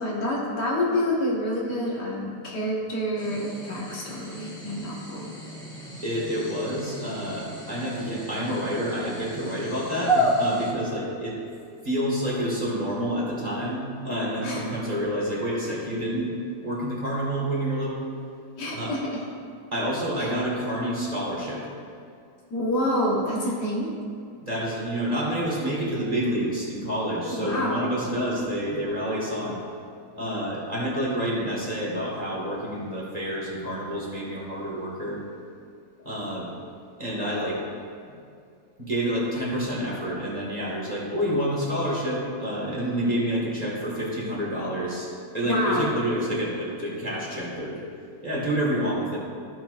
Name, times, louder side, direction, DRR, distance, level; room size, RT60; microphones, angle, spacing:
voice 1, 0.0-5.3 14.4-14.6 18.6-19.1 20.2-20.3 22.5-23.9 27.3-27.8 45.4-46.0, left 1 dB, 85° left, -5 dB, 2.1 m, -28 dB
sound 1, 3.2-10.7, right 1 dB, 5° left, 1.2 m, -31 dB
voice 2, 6.0-11.4 11.8-16.3 16.6-18.1 18.7-18.9 19.7-21.6 24.4-29.6 30.1-35.2 36.0-36.5 37.0-37.6 38.8-45.1 45.3-47.8 48.2-49.2, equal, 25° right, -6 dB, 1.9 m, -28 dB
14.5 x 5.8 x 2.5 m, 2.3 s
omnidirectional pair, 1.8 m